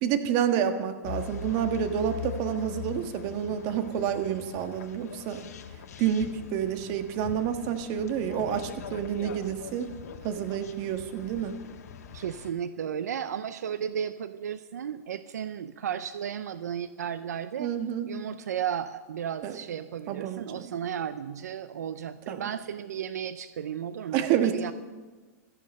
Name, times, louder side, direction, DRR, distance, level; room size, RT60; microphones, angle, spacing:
voice 1, 0.0-5.4 6.0-9.9 10.2-11.6 17.6-18.1 19.4-19.6 20.1-20.7 22.3-22.4 24.1-24.7, right 9 dB, 45° right, 7 dB, 1.7 m, -29 dB
sound 1, 1.0-12.5, left 7 dB, 75° left, 1.7 m, -42 dB
voice 2, 12.1-17.7 18.1-24.7, right 8 dB, 85° right, 12 dB, 0.7 m, -34 dB
17.0 x 13.5 x 5.5 m, 1.3 s
hypercardioid pair, 125°, 9 cm